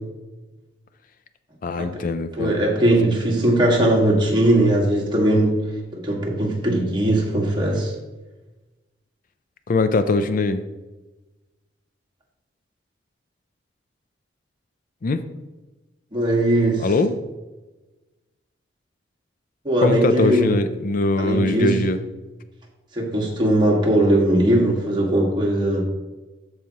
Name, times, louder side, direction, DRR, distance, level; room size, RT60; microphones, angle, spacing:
voice 1, 1.6-2.6 9.7-10.6 15.0-15.2 16.8-17.2 19.8-22.0, left 3 dB, 50° left, 10 dB, 0.4 m, -21 dB
voice 2, 2.4-5.6 5.9-7.9 16.1-16.9 19.7-20.5 21.2-21.7 23.0-25.9, right 1 dB, 25° right, -2 dB, 1.8 m, -19 dB
13.5 x 4.9 x 2.9 m, 1.1 s
head